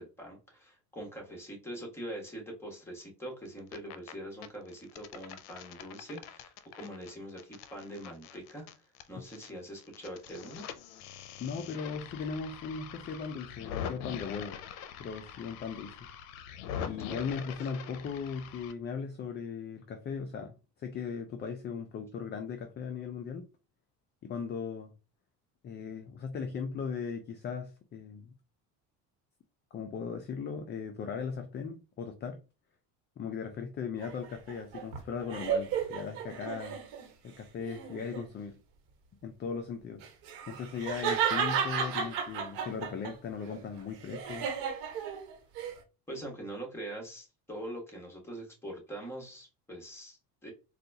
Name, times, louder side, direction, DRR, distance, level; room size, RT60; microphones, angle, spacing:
voice 1, 0.0-8.7 9.1-10.7 17.1-17.3 40.9-41.0 46.1-50.5, right 1 dB, 5° left, 1.5 m, -43 dB
sound 1, 3.5-4.1 4.4-9.5 9.8-18.7, left 8 dB, 85° left, 0.6 m, -43 dB
voice 2, 11.4-14.6 15.0-16.0 16.8-23.5 24.2-24.9 25.6-28.3 29.7-32.4 33.2-36.8 37.2-38.6 39.2-40.0 40.5-44.5, left 6 dB, 25° left, 0.4 m, -38 dB
sound 2, 34.0-37.1 37.6-38.3 40.0-43.1 43.5-45.7, right 7 dB, 80° right, 1.2 m, -33 dB
4.0 x 2.3 x 2.7 m
cardioid pair, 115°, 41 cm